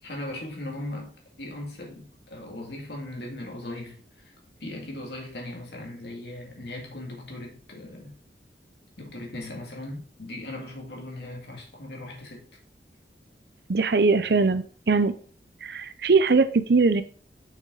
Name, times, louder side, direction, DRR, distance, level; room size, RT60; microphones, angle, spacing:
voice 1, 0.0-4.3 4.6-8.2 9.0-12.5, left 1 dB, 70° left, 2.3 m, -38 dB
voice 2, 13.7-15.1 15.6-17.0, right 4 dB, 65° right, 0.6 m, -21 dB
6.6 x 6.1 x 3.9 m
head